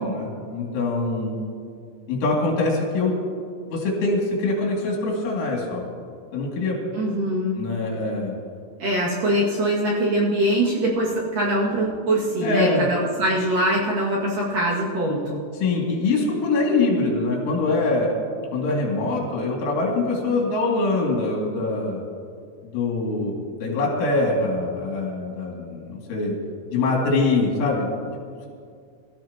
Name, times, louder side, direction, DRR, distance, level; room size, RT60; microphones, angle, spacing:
voice 1, 0.0-1.4 2.1-3.2 3.7-5.8 6.3-6.8 7.6-8.3 12.4-12.9 15.6-18.1 18.5-22.0 22.6-23.3 23.6-26.4 26.7-27.9, left 3 dB, 75° left, -2 dB, 4.8 m, -23 dB
voice 2, 6.9-7.6 8.8-15.4, right 1 dB, 50° right, -6 dB, 3.1 m, -23 dB
23.5 x 14.0 x 2.9 m, 2.2 s
omnidirectional pair, 5.7 m